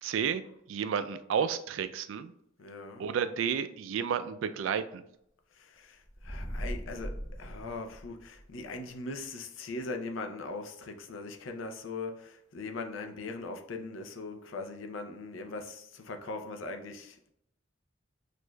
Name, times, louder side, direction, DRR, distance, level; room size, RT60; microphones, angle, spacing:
voice 1, 0.0-2.3 3.0-5.0, right 7 dB, 80° right, 12 dB, 0.3 m, -31 dB
voice 2, 2.6-3.1 5.6-6.0 6.2-7.1 7.4-17.3, left 3 dB, 90° left, 5 dB, 0.5 m, -40 dB
sound 1, 6.0-8.5, equal, 20° left, 0.7 m, -39 dB
6.2 x 2.5 x 2.2 m, 0.75 s
head